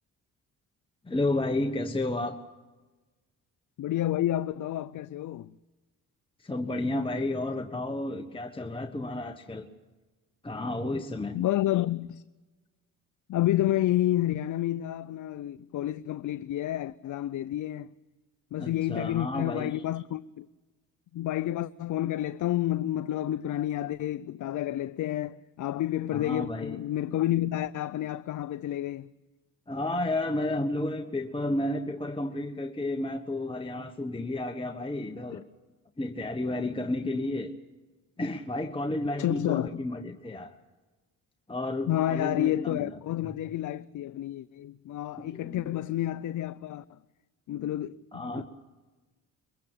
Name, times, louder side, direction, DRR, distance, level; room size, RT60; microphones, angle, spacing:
voice 1, 1.0-2.4 6.4-9.7 10.4-11.4 18.6-19.7 26.1-26.8 29.7-35.4 36.0-37.5 38.2-40.5 41.5-42.9 45.2-45.7 48.1-48.4, left 2 dB, 15° left, 1.3 m, -32 dB
voice 2, 3.8-5.6 11.3-12.2 13.3-17.9 18.5-20.5 21.1-29.1 35.3-35.4 39.2-39.8 41.9-47.0 47.5-48.4, left 13 dB, 60° left, 0.6 m, -30 dB
23.0 x 15.5 x 8.8 m
supercardioid pair, 70°, 35 cm